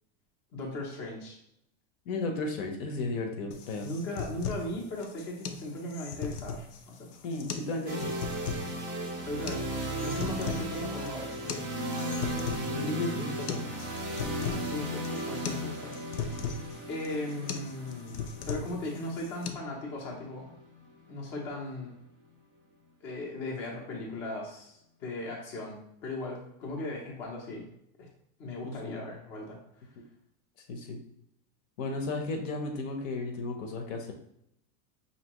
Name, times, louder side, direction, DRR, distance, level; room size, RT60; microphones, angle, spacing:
voice 1, 0.5-1.4 3.8-7.1 9.2-11.3 14.3-15.9 16.2-16.5 16.9-20.5 21.1-21.9 23.0-27.6 28.0-28.1 28.4-29.6, left 1 dB, 25° left, -2 dB, 0.6 m, -38 dB
voice 2, 2.1-3.9 7.2-8.1 12.7-13.7 28.6-29.0 30.0-30.1 30.7-31.0 31.8-34.1, left 3 dB, 60° left, 3 dB, 0.8 m, -34 dB
sound 1, 3.5-19.5, left 6 dB, 90° left, 0.7 m, -39 dB
sound 2, 7.9-21.7, right 1 dB, 25° right, 0.4 m, -36 dB
5.4 x 2.9 x 2.9 m, 0.74 s
supercardioid pair, 175°, 44 cm